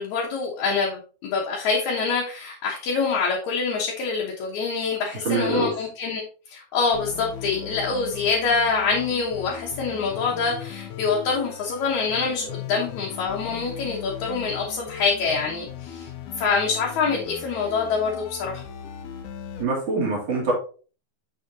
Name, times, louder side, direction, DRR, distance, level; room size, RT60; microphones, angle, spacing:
voice 1, 0.0-6.2 6.5-16.1 16.4-18.6, left 4 dB, 75° left, -3 dB, 2.5 m, -25 dB
voice 2, 5.2-5.7 19.6-20.5, right 3 dB, 60° right, -2 dB, 3.1 m, -24 dB
sound 1, 6.9-19.6, left 9 dB, 90° left, 2.3 m, -38 dB
6.4 x 6.3 x 2.7 m, 0.38 s
omnidirectional pair, 3.4 m